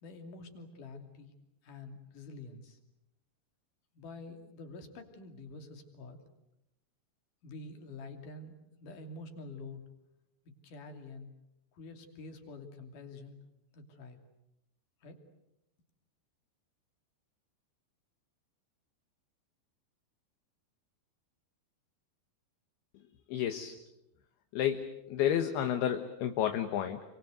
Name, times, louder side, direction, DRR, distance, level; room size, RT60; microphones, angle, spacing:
voice 1, 0.0-1.3 1.6-2.8 3.9-6.2 7.4-9.8 10.6-11.3 11.7-13.4 13.7-14.2 15.0-15.2, left 3 dB, 50° left, 5 dB, 4.0 m, -47 dB
voice 2, 23.3-23.7 24.5-27.0, left 10 dB, 70° left, 7 dB, 3.1 m, -31 dB
28.0 x 25.0 x 8.0 m, 0.87 s
omnidirectional pair, 5.0 m